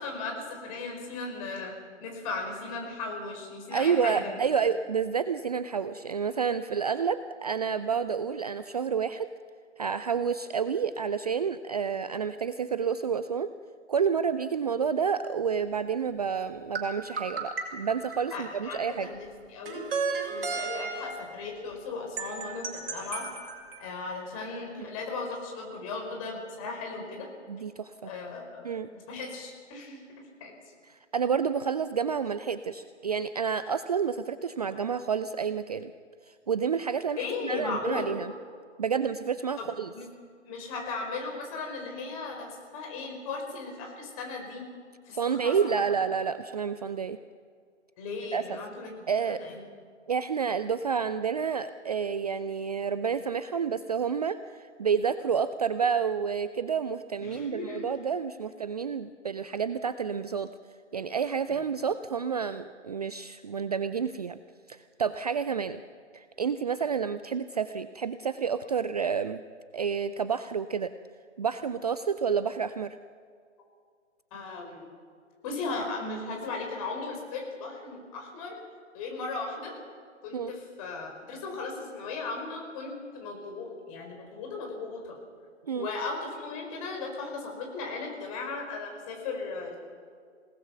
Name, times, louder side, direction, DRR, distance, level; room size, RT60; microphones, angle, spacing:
voice 1, 0.0-1.7 2.0-4.4 18.3-19.9 20.3-23.3 23.8-27.3 28.0-28.6 29.1-30.5 37.2-38.1 39.6-39.7 39.9-40.0 40.5-44.6 45.1-45.6 48.0-48.9 49.2-49.6 57.2-57.9 61.5-61.6 74.3-74.9 75.4-78.6 78.9-79.8 80.2-85.2 85.7-89.8, left 3 dB, 30° left, 2 dB, 5.2 m, -37 dB
voice 2, 3.7-9.3 9.8-13.5 13.9-19.1 24.8-24.9 27.5-28.1 28.6-28.9 30.9-35.9 36.5-38.3 38.8-39.9 45.1-47.2 48.3-48.4 49.1-49.4 50.1-60.5 60.9-64.4 64.7-65.8 66.1-69.4 69.7-70.9 71.4-73.0 80.3-80.5 85.7-85.9, right 6 dB, 35° right, 12 dB, 0.5 m, -29 dB
sound 1, 16.7-18.7 19.6-21.3 22.2-23.9, right 4 dB, 50° right, 5.8 m, -34 dB
27.5 x 19.0 x 6.0 m, 2.1 s
figure-of-eight pair, 130°, 37 cm